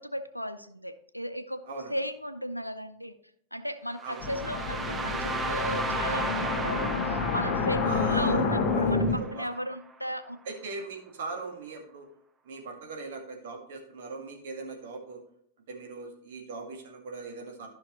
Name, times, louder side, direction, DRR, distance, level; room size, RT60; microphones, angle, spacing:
voice 1, 0.0-1.6 1.9-3.1 3.5-7.8 8.1-10.4, equal, 90° left, 11 dB, 0.5 m, -35 dB
voice 2, 1.6-2.0 4.0-4.3 7.8-9.5 10.4-12.1 12.4-15.2 15.7-17.7, right 3 dB, 55° right, 2 dB, 1.8 m, -40 dB
sound 1, 4.0-9.9, right 3 dB, 15° right, 0.7 m, -35 dB
sound 2, 4.2-9.2, left 4 dB, 40° left, 1.2 m, -28 dB
13.0 x 5.8 x 3.1 m, 0.67 s
figure-of-eight pair, 90°, 0 cm